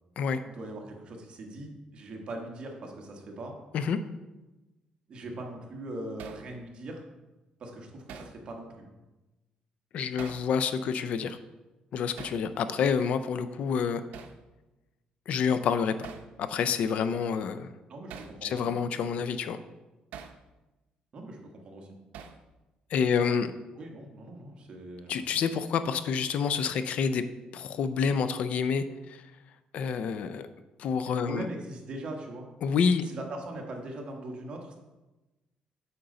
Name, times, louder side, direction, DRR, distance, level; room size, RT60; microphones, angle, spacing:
voice 1, 0.5-3.5 5.1-7.0 7.6-8.9 17.9-18.8 21.1-22.0 23.2-23.3 23.7-25.3 31.1-32.5 33.0-34.7, right 1 dB, 40° right, 1 dB, 1.3 m, -41 dB
Hammer, 6.2-6.5 8.1-8.4 10.2-10.5 12.2-12.4 14.1-14.4 16.0-16.3 18.1-18.4 20.1-20.4 22.1-22.4, right 7 dB, 85° right, 0.6 m, -44 dB
voice 2, 9.9-11.4 11.9-14.0 15.3-15.9 16.4-17.7 18.4-19.6 22.9-23.5 25.1-27.2 27.5-29.3 29.7-30.5 30.8-31.5 32.6-33.1, left 6 dB, 55° left, 11 dB, 0.4 m, -28 dB
8.7 x 5.2 x 3.8 m, 1.1 s
cardioid pair, 165°, 3 cm